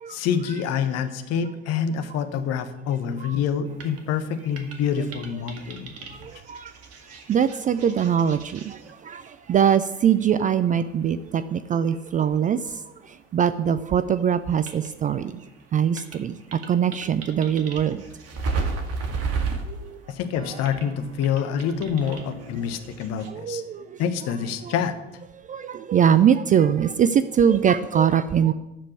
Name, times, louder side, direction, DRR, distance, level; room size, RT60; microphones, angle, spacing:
voice 1, 0.1-5.9 20.1-23.6 24.0-24.9, left 7 dB, 45° left, 9 dB, 1.3 m, -26 dB
sound 1, 3.7-13.7 14.0-23.3, right 4 dB, 45° right, 1.9 m, -36 dB
voice 2, 6.2-6.7 7.3-9.2 9.5-12.6 13.3-15.4 15.7-16.4 16.7-18.0 19.7-19.8 23.3-23.8 24.6-24.7 25.5-28.5, right 8 dB, 25° right, 13 dB, 0.4 m, -22 dB
sound 2, 20.3-24.0, right 4 dB, 70° right, 1.5 m, -46 dB
13.5 x 5.2 x 8.5 m, 0.98 s
figure-of-eight pair, 65°, 35 cm